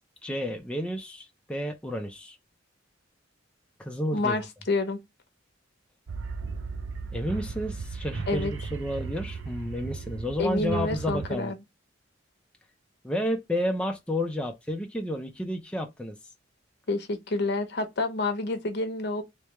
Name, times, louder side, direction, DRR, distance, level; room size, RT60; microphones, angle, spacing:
voice 1, 0.2-2.4 3.8-4.4 7.1-11.5 13.0-16.2, equal, 5° left, 0.5 m, -31 dB
voice 2, 4.1-5.0 8.3-8.5 10.4-11.6 16.9-19.2, left 2 dB, 60° left, 0.9 m, -28 dB
sound 1, 6.1-11.3, right 4 dB, 75° right, 0.6 m, -36 dB
3.3 x 3.3 x 3.1 m
head